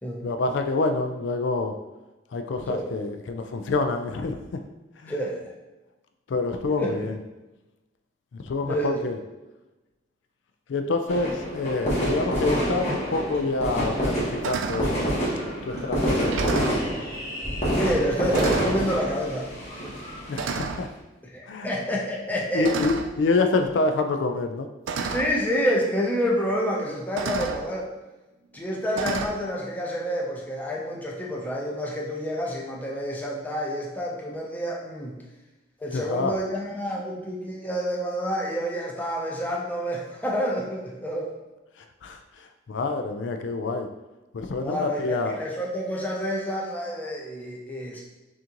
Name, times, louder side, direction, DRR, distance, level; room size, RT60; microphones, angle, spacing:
voice 1, 0.2-1.7 2.3-4.6 5.0-5.2 6.3-7.2 8.3-9.2 10.7-15.0 15.7-16.9 20.3-20.9 21.5-21.7 22.5-24.7 35.9-36.3 42.0-43.9 44.3-45.4, left 3 dB, 75° left, 6 dB, 0.4 m, -27 dB
voice 2, 2.7-3.0 5.1-5.5 6.8-7.0 8.7-9.1 17.7-19.5 21.3-22.7 25.1-27.9 28.5-35.2 35.8-41.3 44.6-48.0, equal, 10° left, -2 dB, 0.6 m, -28 dB
sound 1, 11.1-20.8, equal, 35° left, 1.3 m, -27 dB
sound 2, 13.3-13.4 13.9-14.2 14.4-14.9 15.7-15.9 16.2-16.9 17.8-18.0 18.3-18.8 19.8-20.0 20.4-20.8 22.6-23.2 24.3-24.4 24.9-25.3 26.5-26.6 27.2-27.6 29.0-29.3, right 4 dB, 85° right, 0.4 m, -31 dB
6.2 x 2.5 x 2.9 m, 1.1 s
head